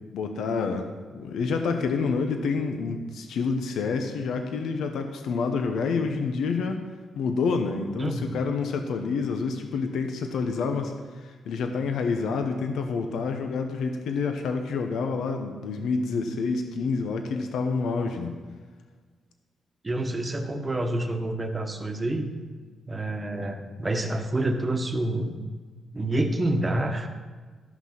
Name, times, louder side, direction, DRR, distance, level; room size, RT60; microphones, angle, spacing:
voice 1, 0.1-6.8 7.2-10.9 11.2-18.4, left 4 dB, 85° left, 5 dB, 0.9 m, -28 dB
voice 2, 8.0-8.4 19.8-22.3 22.9-25.4 25.9-27.1, right 1 dB, 20° right, 5 dB, 1.2 m, -28 dB
13.0 x 6.0 x 6.0 m, 1.5 s
cardioid pair, 115°, 0 cm